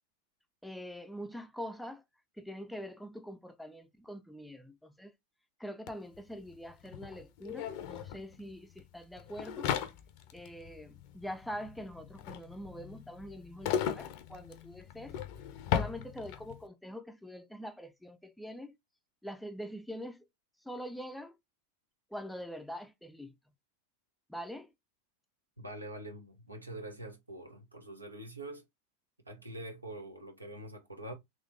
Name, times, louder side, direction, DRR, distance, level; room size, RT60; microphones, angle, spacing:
voice 1, 0.6-2.0 2.4-5.1 5.6-9.7 10.3-15.2 15.7-18.7 19.2-20.2 20.6-21.4 22.1-23.3 24.3-24.7, equal, ahead, 0.5 m, -44 dB
sound 1, 5.9-6.0 6.1-16.6, left 9 dB, 45° left, 0.7 m, -38 dB
voice 2, 25.6-28.6 29.3-31.1, right 1 dB, 85° right, 1.2 m, -45 dB
4.0 x 3.2 x 3.2 m
figure-of-eight pair, 90°, 0 cm